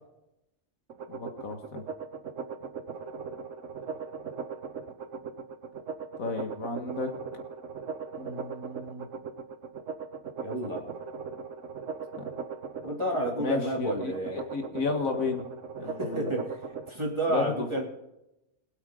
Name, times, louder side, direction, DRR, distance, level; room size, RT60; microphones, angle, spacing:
sound 1, 0.9-16.9, right 5 dB, 60° right, 1.2 m, -39 dB
voice 1, 1.1-1.8 6.2-7.1 8.2-9.1 12.2-12.3 13.4-15.4 15.8-16.3 17.3-17.7, left 4 dB, 70° left, 5 dB, 2.0 m, -33 dB
voice 2, 10.4-10.9 12.8-14.5 15.8-16.6 16.9-17.8, right 1 dB, 20° right, -1 dB, 3.0 m, -31 dB
23.0 x 8.3 x 3.8 m, 0.90 s
omnidirectional pair, 1.5 m